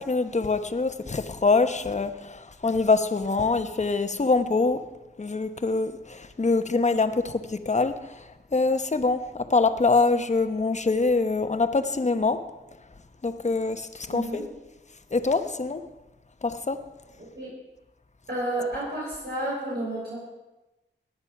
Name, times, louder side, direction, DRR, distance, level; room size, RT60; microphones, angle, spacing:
voice 1, 0.0-4.8 5.2-8.2 8.5-12.4 13.2-14.4 15.1-15.8 16.4-16.8, left 3 dB, 35° left, 9 dB, 1.0 m, -24 dB
voice 2, 14.1-14.4 17.4-17.5 18.3-20.2, right 1 dB, 60° right, -8 dB, 5.9 m, -30 dB
17.5 x 10.5 x 5.9 m, 1.1 s
wide cardioid pair, 80°, 19 cm